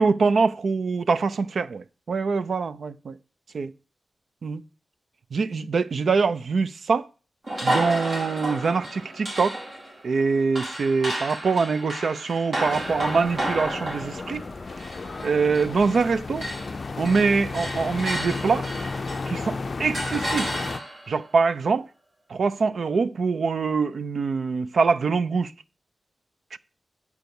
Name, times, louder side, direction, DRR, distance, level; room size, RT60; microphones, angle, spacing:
voice 1, 0.0-3.1 3.5-3.7 4.4-4.6 5.3-7.1 7.6-9.6 10.0-14.4 15.2-16.5 17.0-18.7 19.3-20.5 21.1-21.9 22.3-25.5 26.5-26.6, right 4 dB, 75° right, 0.5 m, -24 dB
sound 1, 7.4-16.1 16.4-19.4 19.9-21.1, right 1 dB, 55° right, 4.1 m, -32 dB
sound 2, 12.6-20.8, left 4 dB, 55° left, 0.4 m, -33 dB
9.1 x 4.7 x 6.9 m
wide cardioid pair, 85°, 0 cm